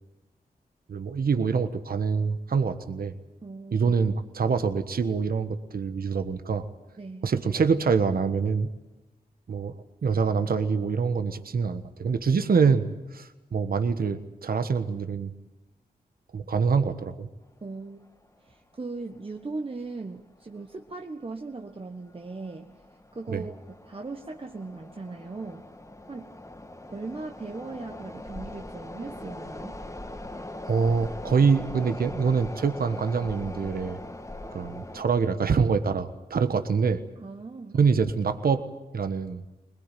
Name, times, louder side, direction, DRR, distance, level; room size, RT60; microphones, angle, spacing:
voice 1, 0.9-3.1 3.7-6.7 7.2-8.7 9.5-12.9 13.1-15.3 16.3-17.3 23.3-23.4 30.7-34.0 34.5-37.0 37.7-38.6 38.9-39.4, right 5 dB, 65° right, 9 dB, 1.4 m, -25 dB
voice 2, 3.4-3.9 7.0-7.3 17.6-18.0 18.4-22.7 23.1-23.5 23.8-25.6 26.1-26.3 26.9-29.8 37.2-37.8, right 3 dB, 35° right, 3 dB, 1.4 m, -38 dB
sound 1, 18.1-18.2 18.5-18.6 19.3-19.6 19.8-20.0 20.6-20.9 21.4-35.0, left 1 dB, 20° left, 1.8 m, -41 dB
21.5 x 20.5 x 9.2 m, 1.0 s
cardioid pair, 55°, 16 cm